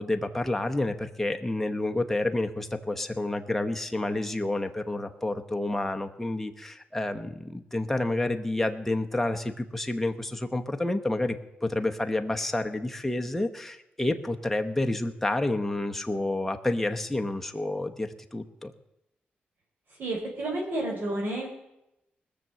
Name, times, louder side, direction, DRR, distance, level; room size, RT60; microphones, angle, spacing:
voice 1, 0.0-11.4 11.6-18.7, left 2 dB, 5° left, 4 dB, 0.9 m, -29 dB
voice 2, 20.0-21.5, right 1 dB, 60° right, -1 dB, 3.7 m, -30 dB
20.0 x 6.8 x 7.6 m, 0.89 s
cardioid pair, 110°, 4 cm